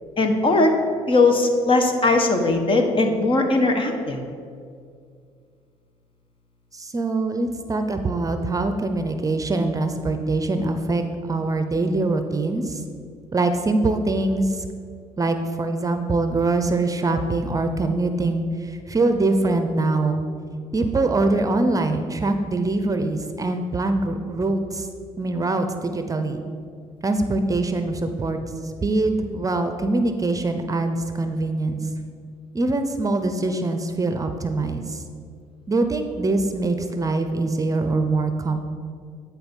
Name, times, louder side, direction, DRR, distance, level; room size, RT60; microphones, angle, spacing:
voice 1, 0.2-0.7 1.1-4.2, left 2 dB, 40° left, 5 dB, 1.2 m, -19 dB
voice 2, 6.7-12.8 13.3-14.7 15.2-20.2 20.7-24.9 25.2-26.4 27.0-28.4 28.8-31.8 32.5-35.0 35.7-38.6, right 2 dB, 25° right, 7 dB, 0.7 m, -23 dB
10.0 x 4.2 x 5.4 m, 2.3 s
supercardioid pair, 70°, 13 cm